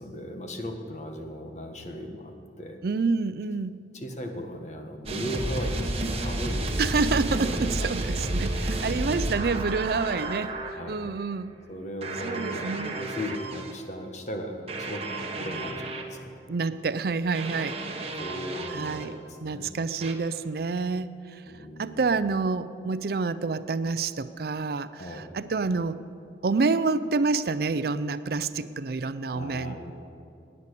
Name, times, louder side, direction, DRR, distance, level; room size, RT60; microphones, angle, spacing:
voice 1, 0.0-2.8 3.9-6.7 7.4-7.9 8.1-8.3 8.8-9.0 10.7-11.1 11.7-16.4 18.1-19.7 21.5-22.1 25.0-25.3 29.2-29.9, equal, 40° left, 4 dB, 1.5 m, -37 dB
voice 2, 2.8-3.8 6.8-10.6 10.9-11.5 12.2-13.0 16.5-17.8 18.7-21.4 21.8-26.0 26.4-29.8, right 4 dB, 55° right, 14 dB, 0.5 m, -28 dB
sound 1, 5.1-10.7 12.0-13.7 14.7-16.1 17.3-19.1 20.0-20.1, right 1 dB, 35° right, 1.3 m, -31 dB
19.0 x 9.8 x 6.7 m, 2.6 s
head